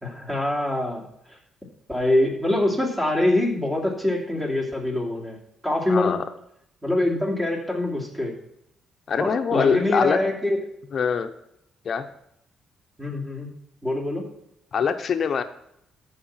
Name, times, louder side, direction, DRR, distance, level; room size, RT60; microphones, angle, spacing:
voice 1, 0.0-1.0 1.3-1.4 1.9-5.4 5.6-6.2 6.8-8.3 9.2-10.6 13.0-13.5 13.8-14.2, left 1 dB, 15° right, -1 dB, 2.9 m, -24 dB
voice 2, 5.9-6.2 9.1-10.2 10.9-11.3 11.8-12.1 14.7-15.4, left 6 dB, 50° left, 8 dB, 0.8 m, -23 dB
13.5 x 5.0 x 5.7 m, 0.78 s
cardioid pair, 90°, 0 cm